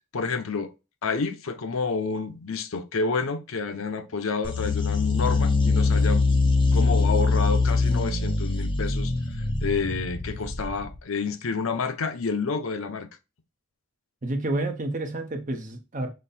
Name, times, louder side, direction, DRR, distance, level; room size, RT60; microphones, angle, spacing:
voice 1, 0.1-0.7 1.0-6.2 6.7-13.1, left 4 dB, 70° left, 0.6 m, -29 dB
sound 1, 4.4-11.0, left 3 dB, 25° left, 0.7 m, -23 dB
voice 2, 14.2-16.1, right 2 dB, 35° right, 0.7 m, -29 dB
5.2 x 2.2 x 4.1 m
head